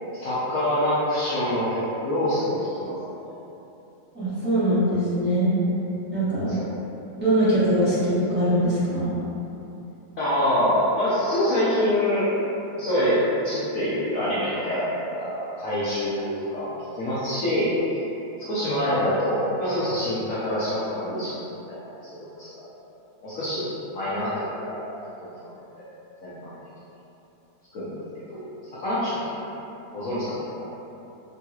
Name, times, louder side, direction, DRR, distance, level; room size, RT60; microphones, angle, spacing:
voice 1, 0.1-3.0 6.5-6.7 10.2-12.3 12.8-14.8 15.1-18.0 18.4-21.8 22.2-22.6 23.2-24.8 25.2-25.9 26.2-26.5 27.7-27.9 28.3-29.2 29.9-30.6, left 1 dB, 70° left, -11 dB, 0.8 m, -26 dB
voice 2, 4.1-5.6 6.1-6.5 7.2-9.1, right 1 dB, 5° right, -15 dB, 0.9 m, -22 dB
3.8 x 2.8 x 2.3 m, 3.0 s
omnidirectional pair, 2.0 m